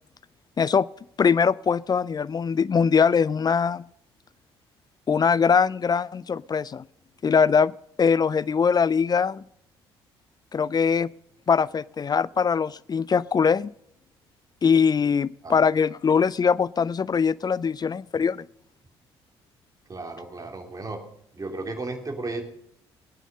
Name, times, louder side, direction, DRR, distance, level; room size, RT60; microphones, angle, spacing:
voice 1, 0.6-0.9 1.2-3.8 5.1-6.8 7.2-7.7 8.0-9.4 10.5-11.1 11.5-13.7 14.6-18.5, left 6 dB, 30° left, 20 dB, 0.5 m, -22 dB
voice 2, 19.9-21.0 21.3-22.5, right 2 dB, 25° right, 3 dB, 3.0 m, -34 dB
18.0 x 9.3 x 5.4 m, 0.74 s
hypercardioid pair, 50°, 13 cm